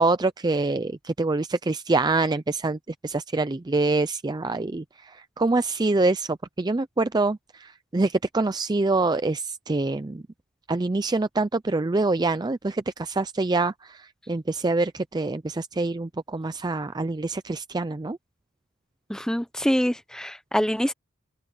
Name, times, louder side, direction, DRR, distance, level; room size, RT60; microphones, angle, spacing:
voice 1, 0.0-10.2 10.7-18.2, right 3 dB, 20° right, 0.4 m, -25 dB
voice 2, 19.1-20.9, equal, 5° left, 0.9 m, -25 dB
open air
head